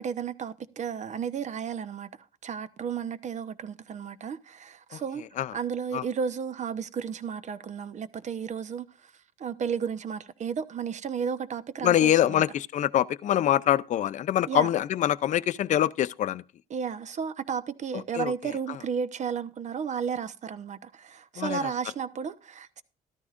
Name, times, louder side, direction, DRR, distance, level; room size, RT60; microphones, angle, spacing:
voice 1, 0.0-2.1 2.4-5.2 5.5-9.1 9.4-12.4 14.5-14.7 16.7-22.8, right 7 dB, 45° right, 0.9 m, -33 dB
voice 2, 11.8-16.4 17.9-18.3 18.7-18.8 21.4-21.7, left 11 dB, 45° left, 0.5 m, -25 dB
13.5 x 13.0 x 2.5 m
cardioid pair, 110°, 17 cm